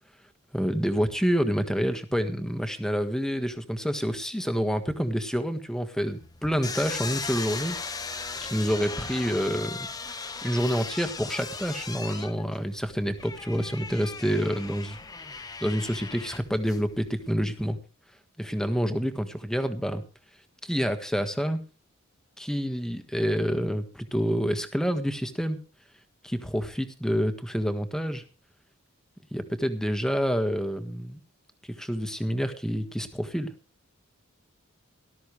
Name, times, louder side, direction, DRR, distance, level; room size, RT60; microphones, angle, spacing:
voice 1, 0.5-8.1 8.4-9.9 10.4-17.8 18.4-20.0 20.6-21.6 22.4-25.6 26.2-28.2 29.3-31.2 31.7-33.5, equal, 5° left, 9 dB, 1.5 m, -28 dB
sound 1, 6.0-17.3, left 4 dB, 20° left, 1.0 m, -38 dB
18.5 x 13.0 x 3.3 m, 0.34 s
head